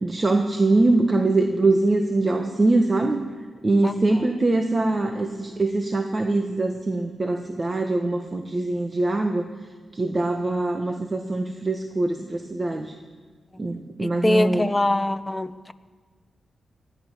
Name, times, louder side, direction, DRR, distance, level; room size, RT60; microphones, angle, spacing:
voice 1, 0.0-3.2 3.6-9.5 9.9-12.9 13.6-14.7, right 2 dB, 30° right, 4 dB, 1.3 m, -23 dB
voice 2, 14.0-15.7, left 1 dB, 20° left, 11 dB, 0.8 m, -23 dB
19.0 x 13.5 x 5.6 m, 1.5 s
cardioid pair, 65°, 0 cm